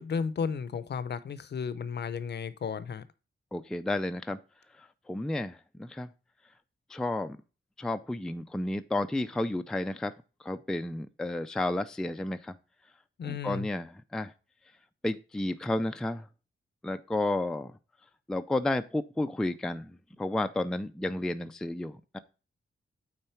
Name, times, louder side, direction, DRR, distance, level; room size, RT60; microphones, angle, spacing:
voice 1, 0.0-3.0 13.2-13.7, left 6 dB, 55° left, 0.6 m, -33 dB
voice 2, 3.5-4.4 4.8-6.1 6.9-7.4 7.8-10.1 10.4-12.6 13.2-14.3 15.0-16.3 16.8-17.7 18.3-22.2, left 2 dB, 5° left, 0.4 m, -32 dB
9.0 x 3.9 x 4.4 m
wide cardioid pair, 145°, 21 cm